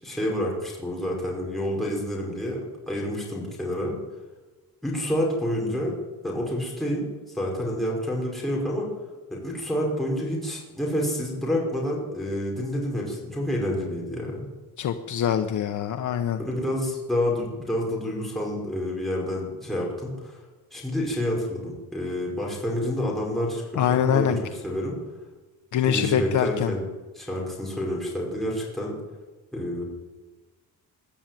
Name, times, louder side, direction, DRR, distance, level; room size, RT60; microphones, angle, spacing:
voice 1, 0.0-4.0 4.8-5.9 6.2-7.1 7.3-8.9 9.3-14.5 16.4-20.4 20.7-24.3 24.6-25.0 25.8-26.8 27.1-28.9 29.5-29.8, left 1 dB, ahead, -3 dB, 5.4 m, -28 dB
voice 2, 14.8-16.4 23.7-24.4 25.7-26.7, left 8 dB, 55° left, 7 dB, 1.1 m, -24 dB
22.0 x 12.5 x 9.3 m, 1.2 s
cardioid pair, 160°, 37 cm